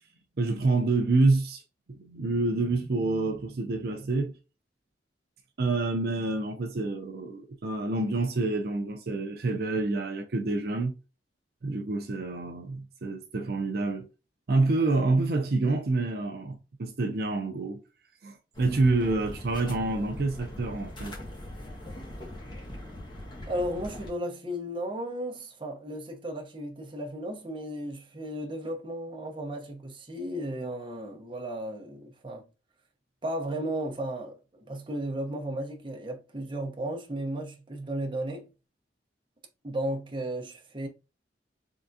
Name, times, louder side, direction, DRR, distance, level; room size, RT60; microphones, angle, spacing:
voice 1, 0.4-1.6 1.9-4.4 5.6-10.9 11.6-14.1 14.5-17.8 18.2-21.2, right 3 dB, 60° right, 0.5 m, -27 dB
sound 1, 18.5-24.1, left 1 dB, 25° left, 1.2 m, -41 dB
voice 2, 23.5-32.5 33.2-38.5 39.6-40.9, right 1 dB, 30° right, 0.8 m, -34 dB
3.7 x 3.4 x 2.6 m
head